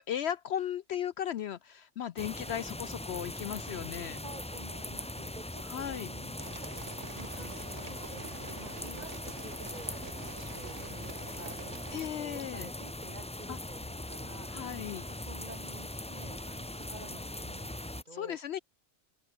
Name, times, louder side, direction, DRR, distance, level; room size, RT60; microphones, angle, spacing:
voice 1, 0.0-4.2 5.7-6.1 11.9-12.7 13.5-13.6 14.5-15.1 18.1-18.6, left 10 dB, 65° left, 0.8 m, -36 dB
sound 1, 2.2-18.0, left 1 dB, 10° left, 0.3 m, -41 dB
voice 2, 4.2-6.5 7.1-18.4, right 2 dB, 35° right, 2.9 m, -51 dB
sound 2, 6.4-12.1, right 4 dB, 65° right, 2.4 m, -47 dB
omnidirectional pair, 1.3 m